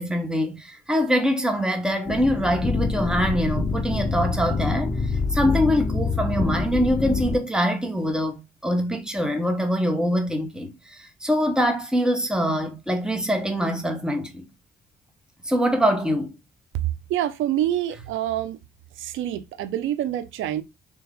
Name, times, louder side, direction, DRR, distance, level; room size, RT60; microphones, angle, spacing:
voice 1, 0.0-4.9 5.3-14.4 15.4-16.3, equal, 5° right, 1.0 m, -24 dB
sound 1, 2.1-7.4, left 4 dB, 30° left, 0.7 m, -26 dB
voice 2, 17.1-18.6 19.0-20.6, right 12 dB, 85° right, 0.5 m, -26 dB
3.5 x 2.9 x 3.6 m
cardioid pair, 90°, 20 cm